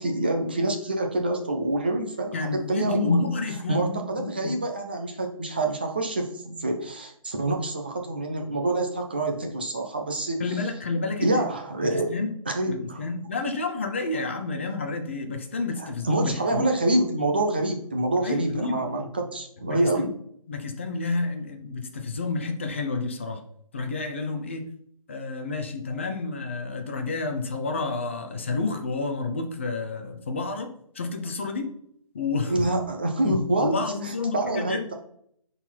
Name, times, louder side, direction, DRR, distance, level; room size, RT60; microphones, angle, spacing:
voice 1, 0.0-3.2 3.7-10.4 11.2-12.1 12.5-13.0 15.8-20.1 32.5-33.7 34.0-34.9, right 2 dB, 15° right, 3 dB, 0.5 m, -26 dB
voice 2, 2.3-4.5 10.4-11.4 11.8-12.3 12.7-16.6 18.2-19.0 19.7-20.1 20.5-23.4 23.7-24.7 25.1-30.7 30.9-31.7 32.1-32.7 33.2-34.9, left 3 dB, 20° left, 5 dB, 0.7 m, -30 dB
10.0 x 4.0 x 4.5 m, 0.68 s
hypercardioid pair, 175°, 18 cm